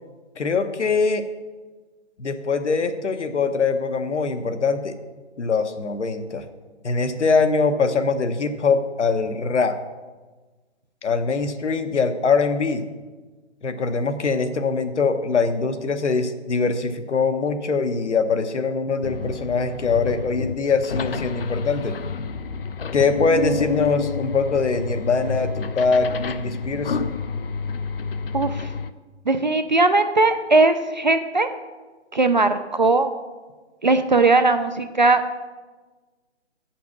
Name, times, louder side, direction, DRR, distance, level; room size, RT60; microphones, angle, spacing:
voice 1, 0.4-1.3 2.2-5.0 5.4-6.4 6.8-9.8 11.0-12.8 13.6-22.0 22.9-27.0, left 4 dB, 75° left, 9 dB, 1.0 m, -22 dB
sound 1, 19.0-28.9, left 5 dB, 55° left, 0.5 m, -29 dB
voice 2, 28.3-28.7 29.3-31.5 32.1-33.1 33.8-35.2, right 3 dB, 40° right, 9 dB, 0.4 m, -19 dB
7.2 x 5.9 x 7.1 m, 1.3 s
hypercardioid pair, 160°, 35 cm